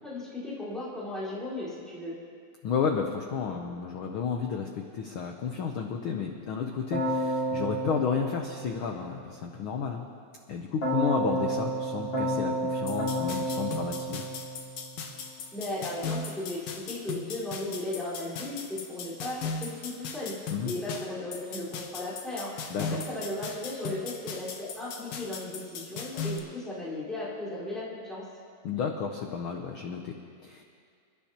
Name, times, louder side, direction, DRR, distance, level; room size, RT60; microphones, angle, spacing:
voice 1, 0.0-2.1 15.5-20.3 20.6-22.5 22.8-28.3, left 2 dB, ahead, -10 dB, 3.9 m, -36 dB
voice 2, 2.6-10.1 10.5-14.2 20.5-20.7 22.7-23.0 28.6-30.6, left 6 dB, 80° left, 3 dB, 1.1 m, -32 dB
Keyboard (musical), 6.9-9.2 10.8-15.1, right 1 dB, 40° left, 3.0 m, -31 dB
sound 1, 12.9-26.4, left 4 dB, 65° left, 1.8 m, -38 dB
28.0 x 11.0 x 2.9 m, 2.2 s
omnidirectional pair, 3.3 m